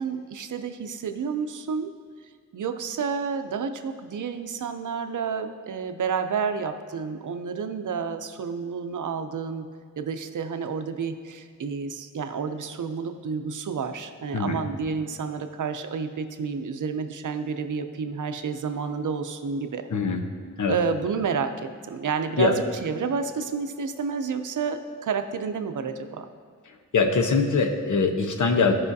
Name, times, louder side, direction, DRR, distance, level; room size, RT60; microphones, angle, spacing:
voice 1, 0.0-1.9 2.5-9.7 10.0-19.9 20.7-26.3, right 6 dB, 80° right, 8 dB, 0.6 m, -30 dB
voice 2, 19.9-20.2 20.6-20.8 22.4-22.5 26.9-28.7, left 4 dB, 75° left, 4 dB, 0.9 m, -22 dB
15.5 x 5.5 x 2.7 m, 2.1 s
wide cardioid pair, 140°, 30 cm